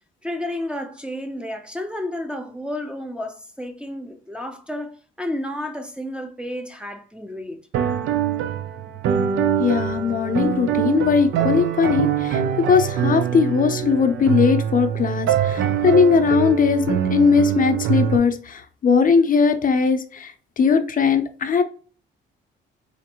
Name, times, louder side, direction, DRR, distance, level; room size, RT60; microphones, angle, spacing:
voice 1, 0.2-7.6, left 1 dB, 5° right, 0.5 m, -31 dB
sound 1, 7.7-18.2, right 9 dB, 80° right, 0.5 m, -23 dB
voice 2, 9.6-21.6, left 5 dB, 45° left, 0.5 m, -19 dB
4.2 x 2.5 x 2.9 m
cardioid pair, 90°, 20 cm